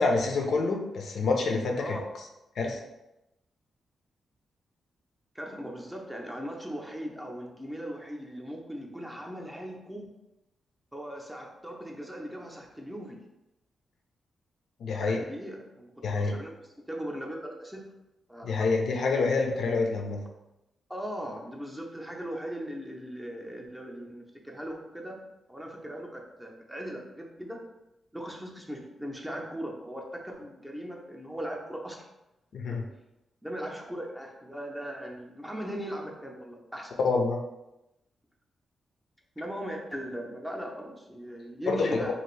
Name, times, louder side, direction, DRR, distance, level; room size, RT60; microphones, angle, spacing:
voice 1, 0.0-2.0 2.6-2.8 14.8-15.2 16.0-16.3 18.4-20.2 32.5-32.8 37.0-37.4 41.7-42.1, left 3 dB, 70° left, 2 dB, 0.4 m, -27 dB
voice 2, 5.3-10.1 10.9-13.2 15.0-16.5 16.8-17.8 18.3-18.5 20.9-25.2 25.5-27.6 28.1-32.1 32.7-32.8 33.4-36.9 39.4-42.1, equal, 5° right, 0 dB, 0.5 m, -39 dB
2.8 x 2.5 x 3.1 m, 0.92 s
cardioid pair, 90°, 0 cm